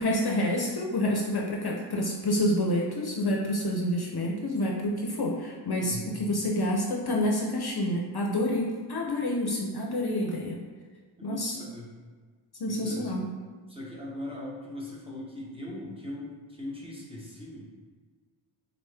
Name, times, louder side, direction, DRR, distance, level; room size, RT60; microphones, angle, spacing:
voice 1, 0.0-10.6 11.2-11.6 12.6-13.3, left 1 dB, 50° left, -1 dB, 0.6 m, -28 dB
voice 2, 5.8-6.1 11.2-11.9 12.6-13.1 13.7-17.6, left 1 dB, 10° right, -5 dB, 1.1 m, -40 dB
3.9 x 3.1 x 3.3 m, 1.5 s
wide cardioid pair, 65°, 49 cm